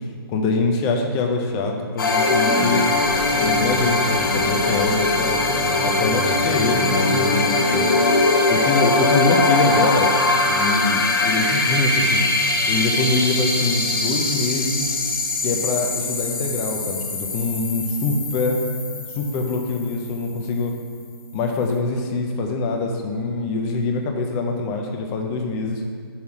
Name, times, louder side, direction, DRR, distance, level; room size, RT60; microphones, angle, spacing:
voice 1, 0.3-2.9 3.4-5.4 5.8-7.9 8.5-10.1 10.4-12.2 12.7-14.9 15.4-18.6 19.1-20.7 21.3-25.8, left 3 dB, 10° left, 3 dB, 0.3 m, -24 dB
sound 1, 2.0-20.4, left 2 dB, 55° left, 1.3 m, -21 dB
5.8 x 5.5 x 4.7 m, 2.1 s
hypercardioid pair, 165°, 13 cm